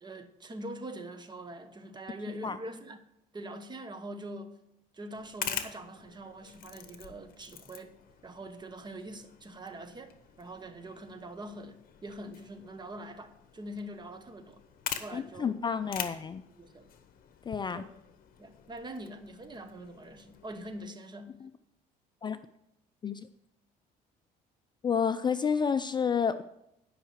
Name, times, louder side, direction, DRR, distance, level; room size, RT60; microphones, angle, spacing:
voice 1, 0.0-3.0 3.3-4.6 4.9-7.9 8.2-14.6 15.0-15.5 16.0-16.1 16.5-16.9 17.7-17.8 18.4-21.4, right 1 dB, 25° right, 1.1 m, -43 dB
sound 1, 5.1-20.9, left 9 dB, 60° left, 1.1 m, -45 dB
voice 2, 15.1-16.4 17.5-17.8 21.4-21.5 22.2-22.4 23.0-23.2 24.8-26.4, left 6 dB, 25° left, 0.4 m, -30 dB
11.0 x 5.6 x 6.6 m
cardioid pair, 110°, 17 cm